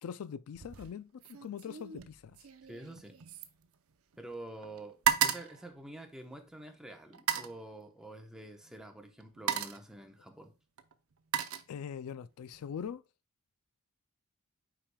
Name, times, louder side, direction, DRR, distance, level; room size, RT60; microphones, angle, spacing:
voice 1, 0.0-2.4 11.7-13.0, left 7 dB, 75° left, 0.3 m, -42 dB
sound 1, 0.5-0.9 1.2-4.3 4.6-6.5 7.1-7.6 8.6-8.8 9.2-9.9 10.8-12.2 12.5-12.9, right 9 dB, 70° right, 0.7 m, -35 dB
voice 2, 2.7-3.1 4.2-10.5, right 1 dB, 5° right, 0.9 m, -47 dB
8.8 x 4.8 x 2.2 m
head